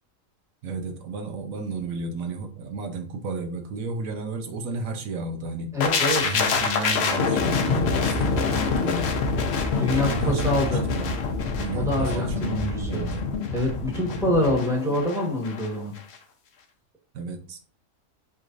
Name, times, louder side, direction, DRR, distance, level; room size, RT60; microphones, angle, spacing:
voice 1, 0.6-5.7 6.2-9.0 9.8-11.2 11.6-13.2 17.1-17.6, right 3 dB, 85° right, 6 dB, 1.2 m, -32 dB
voice 2, 5.7-6.3 9.7-10.9 11.7-13.1 13.5-15.9, left 1 dB, ahead, -1 dB, 1.1 m, -25 dB
sound 1, 5.8-15.7 16.0-16.2, left 4 dB, 60° left, 0.8 m, -26 dB
5.7 x 3.2 x 2.5 m, 0.42 s
omnidirectional pair, 1.4 m